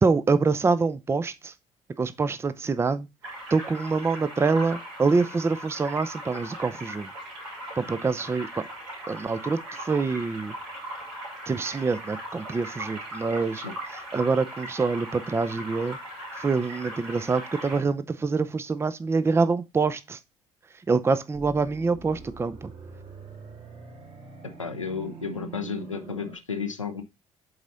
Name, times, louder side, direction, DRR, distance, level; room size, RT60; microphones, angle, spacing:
voice 1, 0.0-1.5 2.0-3.1 3.5-7.1 7.8-8.7 9.1-10.6 11.5-13.6 14.1-16.0 16.3-20.2 20.7-22.7, right 4 dB, 15° right, 0.5 m, -25 dB
sound 1, 3.2-17.8, right 1 dB, 65° right, 3.2 m, -39 dB
sound 2, 21.3-26.3, right 4 dB, 35° right, 1.9 m, -44 dB
voice 2, 24.6-27.0, left 5 dB, 85° left, 0.6 m, -33 dB
7.9 x 4.1 x 3.8 m
figure-of-eight pair, 50°, 16 cm